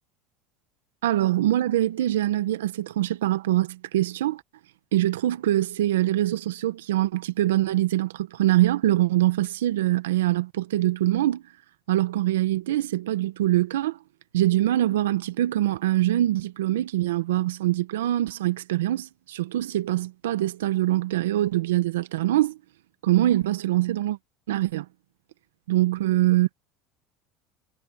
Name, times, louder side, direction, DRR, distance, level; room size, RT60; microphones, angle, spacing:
voice 1, 1.0-4.4 4.9-11.4 11.9-14.0 14.3-22.6 23.0-24.2 24.5-24.8 25.7-26.5, right 14 dB, 85° right, 1.3 m, -23 dB
hypercardioid pair, 85°, 0 cm